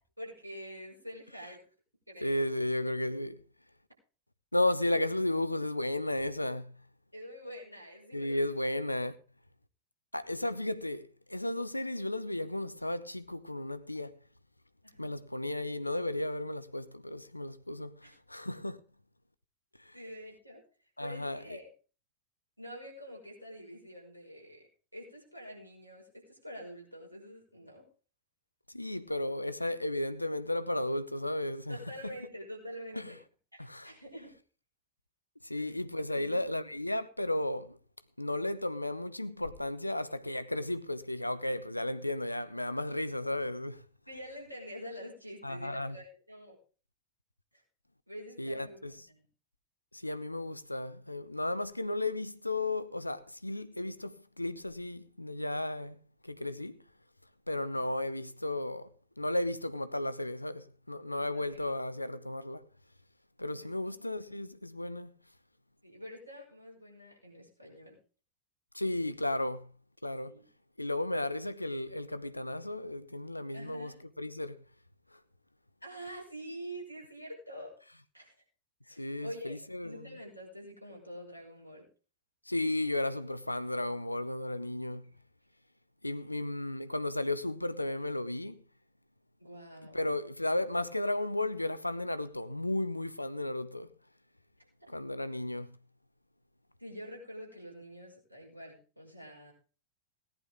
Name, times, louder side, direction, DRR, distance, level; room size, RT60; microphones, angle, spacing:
voice 1, 0.2-1.6 2.1-2.4 7.1-8.5 14.8-15.1 18.0-18.1 19.9-20.6 21.0-21.7 22.6-24.6 24.9-27.9 31.7-33.2 33.5-34.3 35.5-35.8 36.1-36.4 44.1-46.6 47.5-47.6 48.1-48.8 49.1-49.3 57.7-58.0 61.3-61.6 63.5-63.7 64.0-64.1 65.8-68.0 70.3-70.4 73.5-74.0 75.8-77.7 78.1-78.3 78.8-79.6 79.8-81.9 85.0-85.1 89.4-90.1 94.8-95.0 96.8-99.5, equal, 85° right, 5.6 m, -46 dB
voice 2, 2.2-3.4 4.5-6.7 8.1-9.2 10.1-14.2 15.0-18.8 19.8-19.9 21.0-21.6 28.7-32.1 32.9-33.1 33.6-33.9 35.4-37.8 38.2-43.8 45.4-46.0 48.4-49.1 49.9-56.0 56.2-56.8 57.5-58.9 59.2-62.7 63.4-65.1 68.7-69.7 70.0-70.3 70.8-74.6 75.1-75.2 79.0-80.2 82.5-85.1 86.0-88.6 89.9-93.9 94.9-95.8, left 1 dB, 85° left, 0.8 m, -34 dB
18.0 x 10.5 x 3.6 m
figure-of-eight pair, 90°, 0 cm